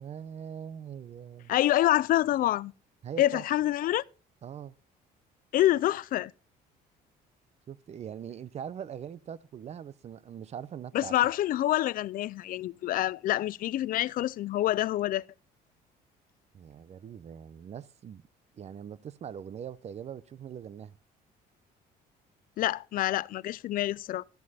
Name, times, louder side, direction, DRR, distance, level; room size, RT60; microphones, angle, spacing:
voice 1, 0.0-1.5 3.0-3.4 4.4-4.7 7.7-11.1 16.5-18.2 18.5-20.9, right 8 dB, 40° right, 0.6 m, -42 dB
voice 2, 1.5-2.7 3.2-4.0 5.5-6.3 10.9-15.2 22.6-24.2, left 14 dB, 55° left, 0.4 m, -27 dB
13.0 x 7.5 x 4.1 m
cardioid pair, 110°, 17 cm